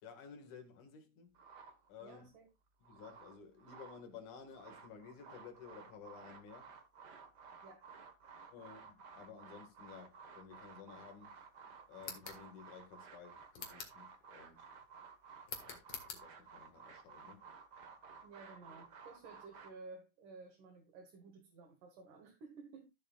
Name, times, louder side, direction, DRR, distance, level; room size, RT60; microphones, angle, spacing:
voice 1, 0.0-1.4 1.9-2.3 2.8-6.7 8.5-11.3 11.9-14.7 15.6-15.8 16.1-17.5, left 6 dB, 70° left, 3.3 m, -54 dB
sound 1, 1.3-2.2 2.7-4.0 4.4-19.7, right 5 dB, 50° right, 1.2 m, -55 dB
voice 2, 2.0-2.5 7.6-7.8 8.6-8.7 18.2-22.9, right 3 dB, 75° right, 3.2 m, -54 dB
sound 2, 12.0-12.4 13.5-14.0 15.4-16.2, left 6 dB, 50° left, 2.4 m, -46 dB
14.5 x 7.3 x 2.4 m
omnidirectional pair, 3.7 m